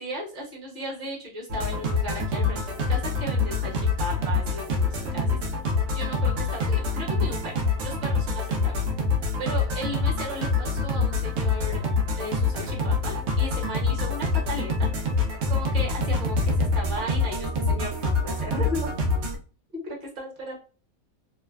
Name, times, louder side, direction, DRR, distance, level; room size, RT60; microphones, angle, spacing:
voice 1, 0.0-5.4 5.9-8.9 9.4-11.8 12.1-14.9 15.5-18.9 19.7-20.6, equal, 35° right, -3 dB, 1.1 m, -35 dB
sound 1, 1.5-19.4, left 3 dB, 65° right, 0.8 m, -26 dB
3.0 x 2.1 x 2.3 m, 0.37 s
omnidirectional pair, 1.5 m